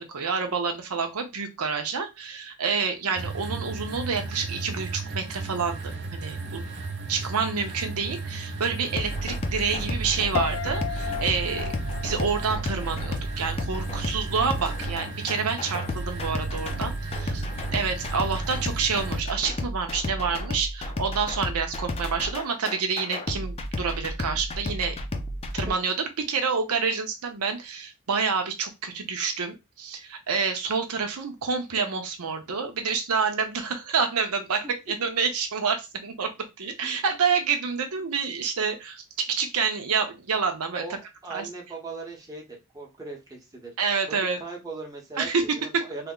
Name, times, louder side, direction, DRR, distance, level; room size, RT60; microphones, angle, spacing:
voice 1, 0.0-6.6 7.1-11.7 12.0-17.4 17.7-25.0 25.5-36.3 36.6-40.8 41.3-41.5 43.8-44.4 45.2-45.4 45.7-45.8, right 5 dB, 90° right, 5 dB, 0.7 m, -28 dB
sound 1, 3.2-19.2, right 3 dB, 55° right, 0.5 m, -35 dB
sound 2, 8.9-25.7, left 1 dB, 25° left, 0.5 m, -32 dB
Piano, 10.3-13.4 13.7-14.2, left 9 dB, 85° left, 0.3 m, -34 dB
voice 2, 25.3-25.7 34.6-34.7 36.8-37.1 40.8-42.5 42.7-43.7 44.1-46.1, right 3 dB, 15° right, -1 dB, 1.0 m, -39 dB
3.3 x 2.1 x 3.7 m, 0.23 s
head